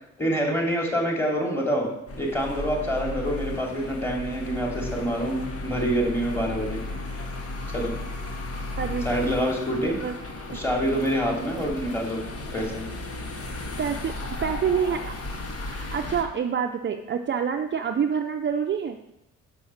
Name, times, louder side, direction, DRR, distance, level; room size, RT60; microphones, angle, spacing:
voice 1, 0.2-1.9 2.1-5.4 5.6-6.8 7.7-7.9 9.0-9.9 10.5-12.2 12.5-12.8, equal, 10° left, -2 dB, 3.2 m, -26 dB
sound 1, 2.1-16.2, left 2 dB, 50° left, 1.7 m, -34 dB
voice 2, 8.8-9.2 9.8-10.1 13.8-14.1 14.4-15.1 15.6-19.0, right 7 dB, 40° right, 5 dB, 0.6 m, -27 dB
6.3 x 6.2 x 7.1 m, 0.89 s
cardioid pair, 90°, 30 cm